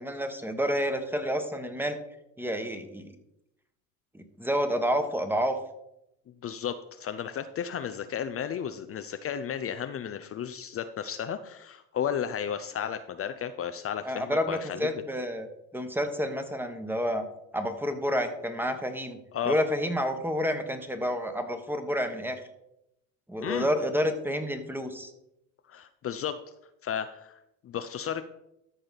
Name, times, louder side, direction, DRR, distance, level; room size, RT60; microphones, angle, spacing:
voice 1, 0.0-2.0 2.4-3.1 4.1-5.6 14.0-15.5 15.7-17.2 17.5-19.2 19.4-22.4 23.3-25.1, equal, 5° right, 7 dB, 1.3 m, -29 dB
voice 2, 6.4-14.9 19.3-19.6 23.4-23.7 25.7-26.4 26.8-28.2, left 8 dB, 35° left, 10 dB, 0.6 m, -33 dB
13.5 x 5.0 x 4.1 m, 0.84 s
supercardioid pair, 80°, 38 cm